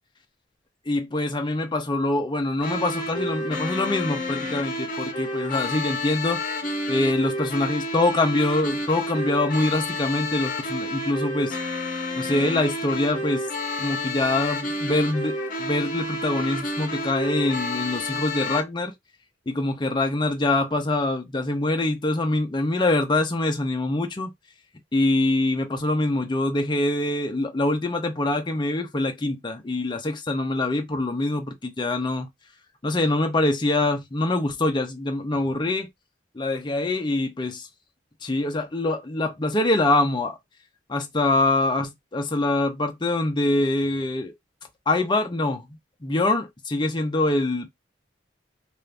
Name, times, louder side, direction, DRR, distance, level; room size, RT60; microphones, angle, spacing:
voice 1, 0.9-6.4 6.9-11.6 12.2-13.5 13.8-18.9 19.5-24.3 24.9-32.3 32.8-35.9 36.3-37.7 38.2-40.4 40.9-44.3 44.9-47.7, left 2 dB, 25° left, 0.6 m, -24 dB
sound 1, 2.6-18.6, left 1 dB, 45° left, 0.9 m, -30 dB
2.6 x 2.5 x 3.3 m
head